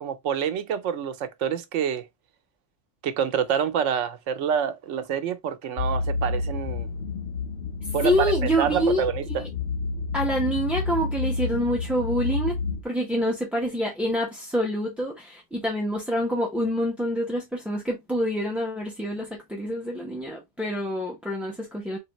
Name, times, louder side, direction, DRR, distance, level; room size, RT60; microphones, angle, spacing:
voice 1, 0.0-2.1 3.0-6.9 7.9-8.1 8.6-9.4, right 8 dB, 85° right, 1.0 m, -27 dB
sound 1, 5.8-12.8, left 3 dB, 75° left, 0.9 m, -29 dB
voice 2, 8.0-9.5 10.1-12.6 12.8-22.0, equal, ahead, 0.6 m, -27 dB
3.6 x 3.3 x 2.9 m
omnidirectional pair, 1.2 m